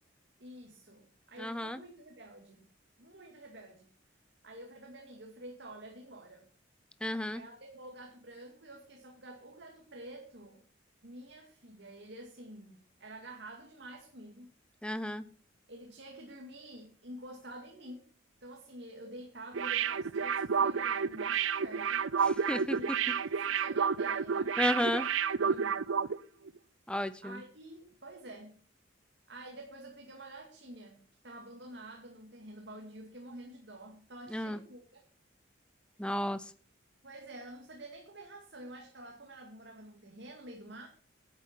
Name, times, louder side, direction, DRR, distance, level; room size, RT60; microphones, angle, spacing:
voice 1, 0.4-2.7 3.0-3.9 4.4-6.5 7.3-10.6 11.0-14.5 15.7-18.1 18.4-22.1 22.7-25.0 25.4-25.9 27.2-28.6 29.3-34.8 37.0-40.9, right 1 dB, 55° right, 1 dB, 2.3 m, -49 dB
voice 2, 1.4-1.8 7.0-7.4 14.8-15.3 22.2-22.8 24.6-25.0 26.9-27.4 34.3-34.6 36.0-36.5, left 1 dB, 5° left, 12 dB, 0.7 m, -33 dB
sound 1, 19.5-26.2 26.5-26.6, right 6 dB, 80° right, 0.6 m, -30 dB
11.0 x 8.4 x 5.8 m, 0.44 s
head